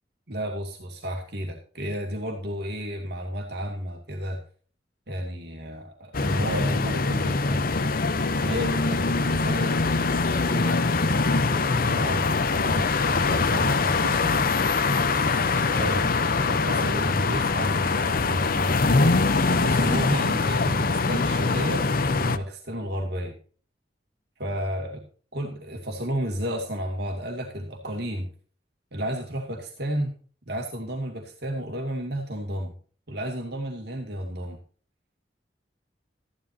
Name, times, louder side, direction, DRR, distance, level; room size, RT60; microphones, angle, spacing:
voice 1, 0.3-4.4 5.1-7.6 8.4-9.8 10.2-14.4 15.6-16.1 16.5-18.9 19.5-23.4 24.4-25.0 25.3-28.3 28.9-30.1 30.5-32.7 33.1-34.6, equal, 65° right, 2 dB, 2.5 m, -32 dB
sound 1, 6.1-22.4, left 3 dB, 55° left, 0.8 m, -23 dB
14.0 x 11.5 x 2.8 m, 0.41 s
head